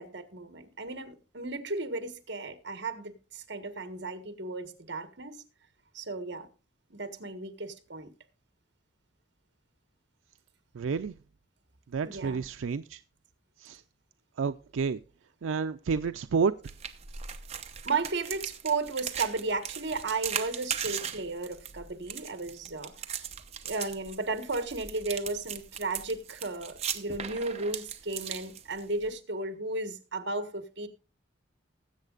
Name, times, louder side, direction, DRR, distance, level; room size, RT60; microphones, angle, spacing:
voice 1, 0.0-5.4 5.9-6.5 6.9-8.1 12.0-12.4 17.8-22.9 23.6-30.9, right 3 dB, 60° right, 1.5 m, -34 dB
voice 2, 10.7-11.1 11.9-13.0 13.6-13.8 14.4-15.0 15.4-16.5, right 5 dB, 90° right, 0.4 m, -30 dB
sound 1, 16.6-29.1, right 8 dB, 35° right, 0.9 m, -38 dB
19.5 x 8.2 x 2.5 m
head